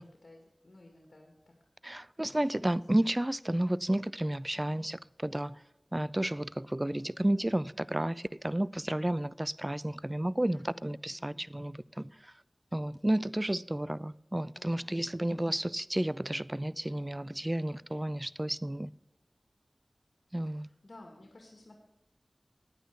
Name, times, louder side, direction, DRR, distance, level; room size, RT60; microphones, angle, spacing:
voice 1, 0.0-1.5 2.1-2.9 10.5-11.4 14.5-15.6 20.5-21.8, left 2 dB, 80° left, 1.9 m, -56 dB
voice 2, 1.8-5.6 5.9-12.3 12.7-18.9 20.3-20.7, right 1 dB, 25° right, 0.4 m, -32 dB
10.5 x 9.2 x 6.8 m
wide cardioid pair, 45°, 0 cm